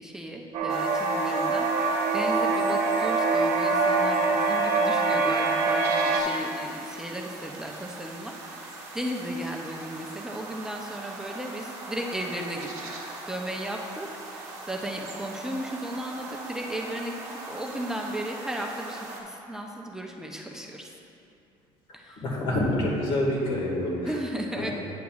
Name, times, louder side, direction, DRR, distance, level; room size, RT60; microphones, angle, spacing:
voice 1, 0.0-12.7 13.3-20.9 21.9-22.2 24.0-24.7, right 1 dB, 5° right, 0 dB, 0.5 m, -35 dB
sound 1, 0.5-6.2, right 3 dB, 75° right, 0.8 m, -24 dB
sound 2, 0.7-19.2, right 2 dB, 30° right, 1.1 m, -41 dB
voice 2, 22.2-24.1 24.6-24.7, left 1 dB, 60° left, -2 dB, 1.7 m, -27 dB
9.4 x 7.6 x 2.3 m, 2.6 s
cardioid pair, 145°, 10 cm